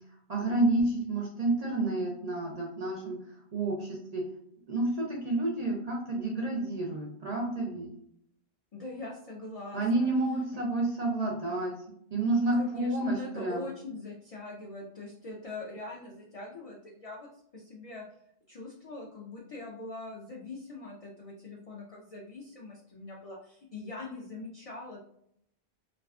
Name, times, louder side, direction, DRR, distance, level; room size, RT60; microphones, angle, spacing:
voice 1, 0.3-3.2 3.5-4.2 4.7-7.9 9.7-11.7 12.1-13.7, right 2 dB, 55° right, -2 dB, 0.4 m, -29 dB
voice 2, 8.7-10.1 12.5-17.3 17.5-18.0 18.5-25.0, left 2 dB, 65° left, -2 dB, 0.3 m, -42 dB
2.3 x 2.3 x 2.3 m, 0.69 s
omnidirectional pair, 1.1 m